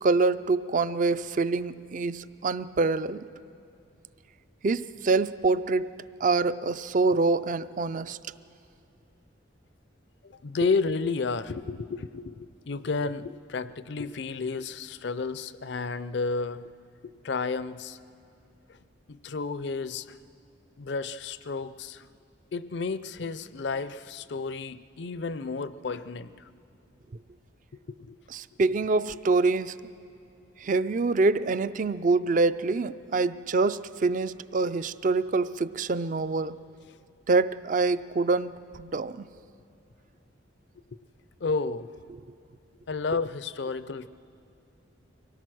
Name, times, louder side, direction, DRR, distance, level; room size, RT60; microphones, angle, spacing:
voice 1, 0.0-3.3 4.6-5.9 6.2-8.2 28.3-29.8 30.6-36.6 37.3-39.3, right 3 dB, 40° right, 15 dB, 0.4 m, -25 dB
voice 2, 10.2-16.7 17.0-18.0 18.7-18.8 19.1-20.2 20.8-22.1 22.5-26.5 27.9-28.2 41.4-41.9 42.9-44.1, left 4 dB, 60° left, 15 dB, 0.5 m, -32 dB
24.5 x 18.0 x 6.2 m, 2.5 s
head